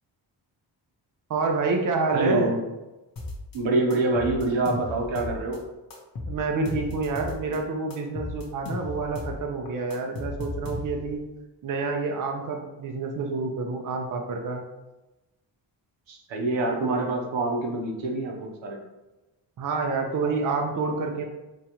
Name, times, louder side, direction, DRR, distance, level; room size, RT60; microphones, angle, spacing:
voice 1, 1.3-2.5 6.3-11.2 11.6-14.6 19.6-21.2, right 4 dB, 45° right, 3 dB, 0.6 m, -28 dB
voice 2, 2.1-2.6 3.5-5.6 16.1-18.8, right 2 dB, 80° right, 0 dB, 0.8 m, -26 dB
sound 1, 3.2-3.6 3.9-5.6 5.9-7.6 7.9-9.4 9.7-11.2, left 2 dB, 50° left, 0.9 m, -35 dB
3.5 x 3.0 x 2.9 m, 1.0 s
cardioid pair, 55°, 45 cm